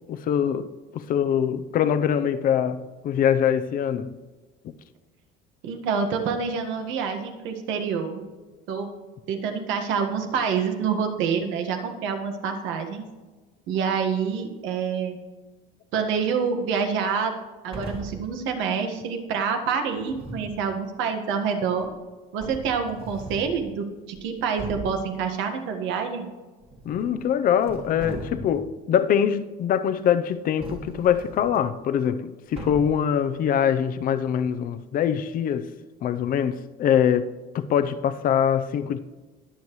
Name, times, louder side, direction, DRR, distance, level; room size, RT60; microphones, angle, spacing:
voice 1, 0.1-4.2 4.6-4.7 26.8-35.7 36.0-39.0, left 8 dB, 45° left, 0.6 m, -23 dB
voice 2, 5.6-8.2 8.7-8.9 9.3-13.0 13.7-15.2 15.9-17.4 17.6-21.9 22.3-26.3, right 6 dB, 70° right, 1.6 m, -27 dB
sound 1, 17.7-18.3 20.0-20.6 21.8-21.9 22.4-23.6 24.1-24.2 24.6-25.1 26.6-27.3 27.6-28.7 30.6-31.6 32.6-33.1, right 2 dB, 25° right, 1.7 m, -38 dB
21.0 x 7.1 x 3.1 m
cardioid pair, 135°, 20 cm